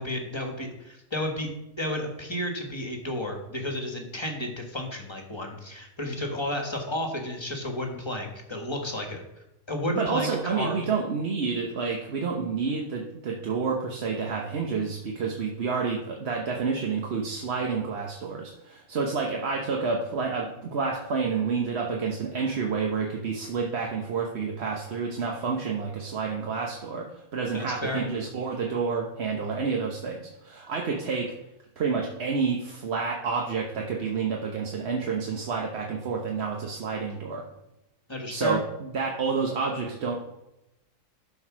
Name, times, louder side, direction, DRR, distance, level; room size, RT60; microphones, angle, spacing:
voice 1, 0.0-1.5 1.8-9.2 9.7-10.8 27.5-28.0 38.1-38.6, left 1 dB, 20° left, 2 dB, 1.4 m, -32 dB
voice 2, 10.0-31.3 31.8-37.4 38.3-40.2, right 5 dB, 50° right, 0 dB, 1.1 m, -29 dB
12.0 x 4.7 x 6.1 m, 0.91 s
omnidirectional pair, 1.6 m